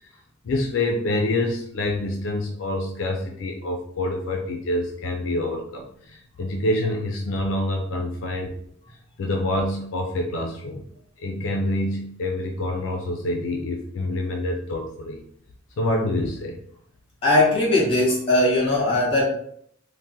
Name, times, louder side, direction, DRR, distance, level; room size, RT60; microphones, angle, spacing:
voice 1, 0.4-8.5 9.2-10.8 11.2-15.2 15.8-16.6, left 1 dB, 80° left, 2 dB, 0.4 m, -26 dB
voice 2, 17.2-19.2, left 2 dB, 30° left, -5 dB, 1.4 m, -19 dB
3.4 x 2.1 x 2.7 m, 0.66 s
head